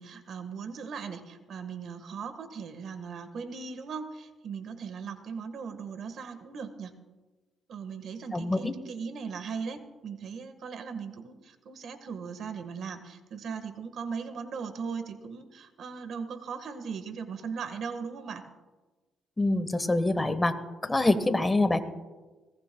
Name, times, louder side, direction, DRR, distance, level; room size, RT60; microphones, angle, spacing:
voice 1, 0.0-6.9 7.7-18.4, right 5 dB, 65° right, 9 dB, 1.5 m, -38 dB
voice 2, 8.3-8.7 19.4-20.5 20.8-21.8, left 2 dB, 15° left, 10 dB, 1.2 m, -25 dB
22.0 x 17.5 x 2.3 m, 1.2 s
cardioid pair, 90°, 0 cm